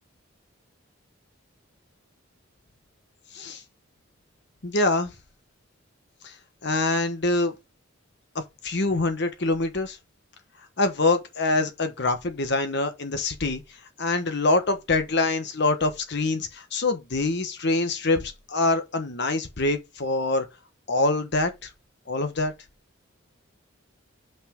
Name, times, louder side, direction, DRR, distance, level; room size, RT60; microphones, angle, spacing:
voice 1, 4.6-5.1 6.2-6.3 6.6-7.5 8.6-10.0 10.8-13.6 14.0-20.4 20.9-21.7 22.1-22.5, left 2 dB, 55° left, 1.2 m, -25 dB
5.8 x 5.5 x 5.1 m
head